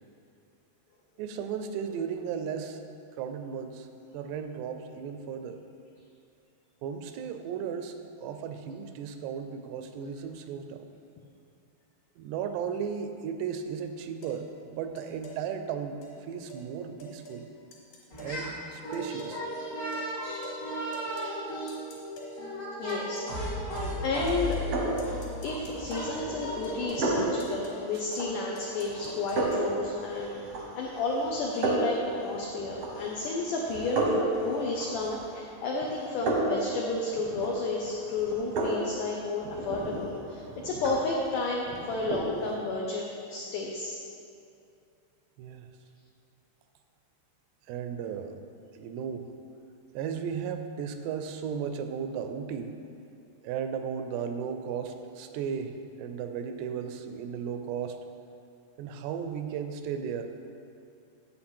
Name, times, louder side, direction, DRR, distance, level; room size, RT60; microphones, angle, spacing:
voice 1, 1.2-2.8 3.2-3.9 4.1-5.6 6.8-10.9 12.2-17.5 18.2-19.4 28.0-28.1 45.4-45.7 47.7-48.4 48.7-49.3 49.9-52.8 53.4-58.0 58.8-60.5, right 7 dB, 90° right, 7 dB, 2.8 m, -35 dB
sound 1, 14.2-14.4 15.0-15.4 16.0-16.2 16.5-16.6 17.0-17.4 17.7-18.4 18.9-19.4 19.9-20.1 20.4-20.6 20.9-21.4 21.7-22.3 22.9-23.3 23.8-23.9 24.3-24.7 25.0-26.1 26.6-27.1 27.4-27.9 28.1-28.3 28.6-29.7, right 1 dB, 60° left, 3.3 m, -46 dB
sound 2, 18.1-18.5 18.8-26.8, equal, 40° left, 1.2 m, -35 dB
voice 2, 22.8-23.7 24.0-24.6 25.4-44.0, left 3 dB, 85° left, -1 dB, 1.8 m, -32 dB
sound 3, 24.3-42.5, right 2 dB, 75° right, 1.4 m, -34 dB
10.0 x 8.0 x 4.4 m, 2.5 s
omnidirectional pair, 4.7 m